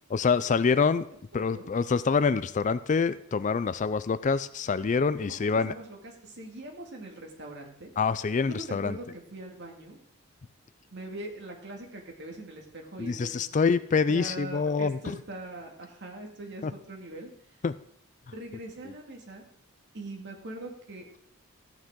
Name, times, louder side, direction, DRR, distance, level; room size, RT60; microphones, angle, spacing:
voice 1, 0.1-1.1 1.3-5.7 8.0-9.0 13.0-15.2 16.6-16.7 17.6-17.7, left 5 dB, 35° left, 14 dB, 0.4 m, -26 dB
voice 2, 1.3-1.7 5.2-6.0 6.2-7.9 8.5-10.0 10.9-13.6 14.1-17.3 18.3-19.4 19.9-21.1, right 2 dB, 55° right, 1 dB, 2.1 m, -42 dB
14.0 x 9.0 x 3.7 m, 0.67 s
head